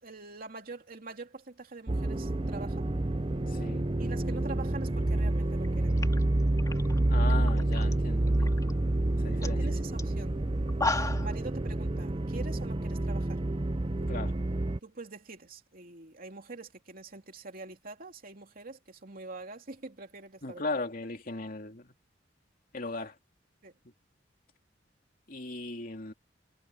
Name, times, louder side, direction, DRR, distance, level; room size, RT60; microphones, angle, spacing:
voice 1, 0.0-2.8 4.0-6.0 9.4-10.4 10.9-13.4 14.8-20.6 23.6-23.7, right 3 dB, 50° right, 2.9 m, -45 dB
sound 1, 1.9-14.8, right 1 dB, 30° right, 0.7 m, -28 dB
voice 2, 3.5-3.8 7.1-8.6 9.2-9.6 14.1-14.3 20.4-21.9 22.7-23.2 25.3-26.1, left 3 dB, 50° left, 2.7 m, -37 dB
sound 2, 5.5-5.7 6.0-7.9 8.2-8.7 9.1-9.2 9.4-9.6 10.0-10.1 10.6-11.3, left 2 dB, 20° left, 3.3 m, -34 dB
head